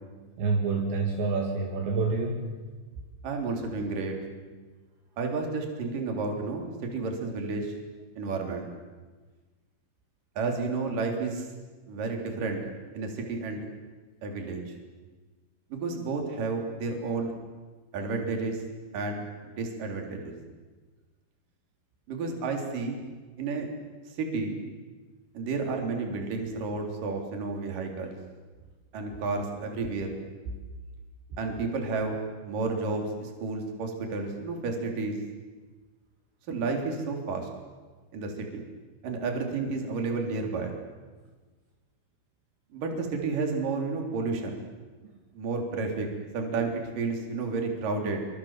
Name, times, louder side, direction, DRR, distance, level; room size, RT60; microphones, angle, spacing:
voice 1, 0.2-2.5 4.5-4.6 30.5-30.6, right 4 dB, 65° right, 0 dB, 4.5 m, -28 dB
voice 2, 3.2-4.2 5.2-7.7 8.2-8.7 10.4-11.5 11.9-12.6 12.9-13.7 14.2-14.7 15.7-17.3 17.9-18.6 18.9-19.3 19.6-20.3 22.1-23.0 23.4-23.7 24.2-24.6 25.3-28.2 28.9-30.1 31.4-35.2 36.5-37.5 38.1-38.6 39.0-40.7 42.7-44.6 45.3-46.1 46.3-48.2, right 4 dB, 45° right, 2 dB, 4.7 m, -31 dB
26.5 x 25.5 x 7.5 m, 1.4 s
omnidirectional pair, 5.8 m